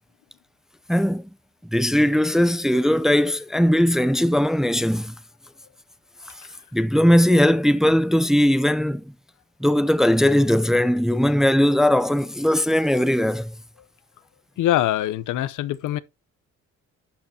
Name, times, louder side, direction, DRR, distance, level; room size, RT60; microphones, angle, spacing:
voice 1, 0.9-1.2 1.7-5.1 6.7-9.0 9.6-13.5, equal, ahead, 0.5 m, -19 dB
voice 2, 14.6-16.0, left 13 dB, 80° left, 0.8 m, -23 dB
11.5 x 6.6 x 2.8 m
cardioid pair, 90°, 30 cm